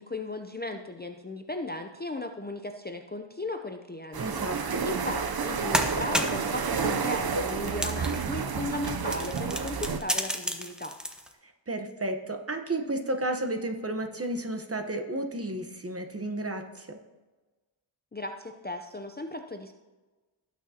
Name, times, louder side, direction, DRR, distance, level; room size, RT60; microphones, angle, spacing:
voice 1, 0.0-4.2 4.5-10.9 18.1-19.7, left 2 dB, 20° left, 5 dB, 0.5 m, -36 dB
sound 1, 4.1-10.0, right 5 dB, 45° right, 0.7 m, -30 dB
voice 2, 4.2-4.8 11.4-17.0, right 1 dB, 30° right, 5 dB, 1.0 m, -32 dB
sound 2, 5.1-5.2 5.5-6.5 7.1-8.4 8.7-11.3, equal, ahead, 0.8 m, -31 dB
18.0 x 6.2 x 2.8 m, 1.2 s
wide cardioid pair, 80°, 50 cm